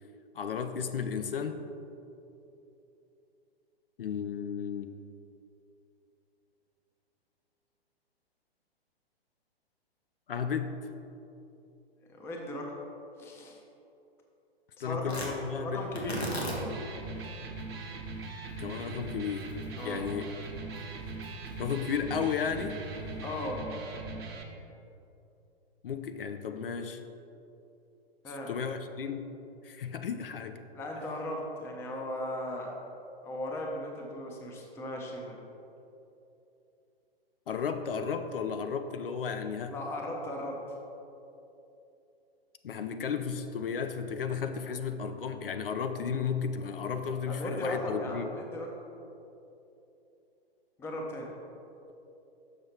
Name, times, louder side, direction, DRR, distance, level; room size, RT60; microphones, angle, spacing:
voice 1, 0.3-1.6 4.0-5.0 10.3-10.7 14.8-15.8 18.6-19.5 19.8-20.3 21.6-22.8 25.8-27.0 28.5-29.3 29.6-30.6 37.5-39.7 42.6-48.3, left 6 dB, 65° left, 8 dB, 0.5 m, -33 dB
voice 2, 12.1-12.8 13.2-13.6 14.8-16.6 19.7-20.0 23.2-23.6 28.2-28.5 30.7-32.7 33.2-35.4 39.7-40.6 47.3-48.7 50.8-51.3, left 1 dB, 10° left, 1 dB, 0.5 m, -37 dB
Tearing, 15.0-23.4, equal, 90° left, 1.5 m, -42 dB
Electric guitar, 16.5-24.4, right 3 dB, 65° right, 1.0 m, -40 dB
6.7 x 5.5 x 4.3 m, 2.9 s
figure-of-eight pair, 115°, 31 cm